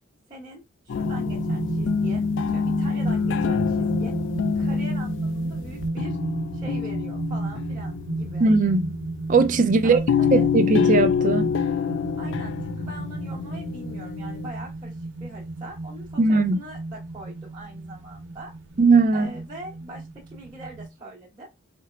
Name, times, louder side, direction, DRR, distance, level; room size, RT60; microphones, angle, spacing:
voice 1, 0.3-4.1 4.5-6.2 6.5-8.5 9.8-10.5 12.2-18.5 19.1-21.5, right 2 dB, 20° right, 1.3 m, -42 dB
sound 1, 0.9-9.2 10.1-14.5, left 7 dB, 60° left, 0.3 m, -26 dB
sound 2, 1.0-20.9, right 2 dB, 60° right, 1.1 m, -32 dB
voice 2, 8.4-8.9 9.3-11.5 16.2-16.6 18.8-19.3, right 3 dB, 40° right, 0.4 m, -19 dB
4.4 x 2.9 x 2.4 m
head